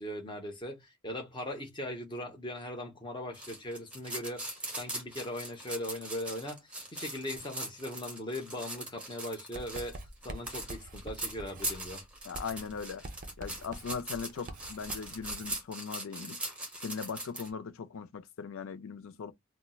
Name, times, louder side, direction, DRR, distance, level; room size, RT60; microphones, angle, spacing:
voice 1, 0.0-10.0 10.2-12.0, left 1 dB, 20° left, 0.8 m, -39 dB
sound 1, 3.3-17.5, right 1 dB, 5° right, 0.8 m, -40 dB
Writing, 9.5-15.6, right 2 dB, 40° right, 0.5 m, -46 dB
voice 2, 12.2-13.0 13.4-16.4 16.8-19.3, left 5 dB, 70° left, 0.4 m, -39 dB
4.1 x 2.1 x 2.3 m
head